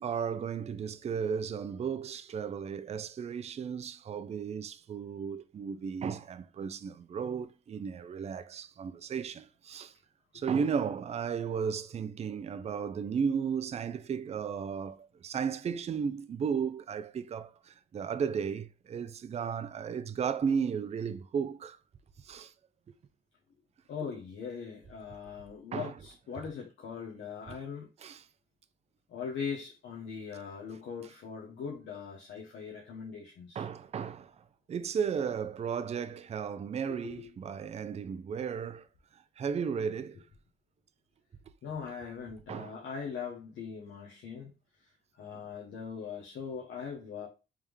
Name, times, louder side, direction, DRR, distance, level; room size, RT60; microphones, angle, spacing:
voice 1, 0.0-9.9 10.3-21.8 22.2-22.5 25.7-25.9 27.5-27.6 28.0-28.3 33.5-34.3 34.7-38.9 39.4-40.2 42.5-42.8, right 6 dB, 35° right, 0.4 m, -34 dB
voice 2, 23.9-27.9 29.1-33.6 37.0-37.1 41.6-44.5 45.2-47.3, left 6 dB, 70° left, 0.9 m, -40 dB
3.5 x 3.3 x 3.1 m
cardioid pair, 90°, 20 cm